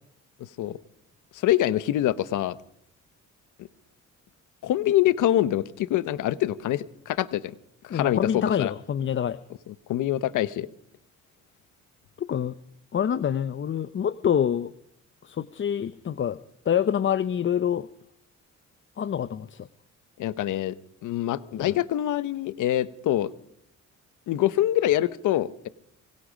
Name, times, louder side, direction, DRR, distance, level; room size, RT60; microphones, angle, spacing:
voice 1, 1.4-2.6 4.6-7.4 7.8-8.7 9.9-10.7 20.2-20.7 21.0-23.3 24.3-25.7, left 13 dB, 80° left, 16 dB, 1.0 m, -25 dB
voice 2, 7.9-9.4 12.2-12.5 12.9-14.7 15.2-16.4 16.7-17.9 19.0-19.7 21.5-21.8, left 9 dB, 40° left, 16 dB, 0.7 m, -26 dB
25.0 x 22.5 x 5.2 m, 0.75 s
cardioid pair, 90°, 30 cm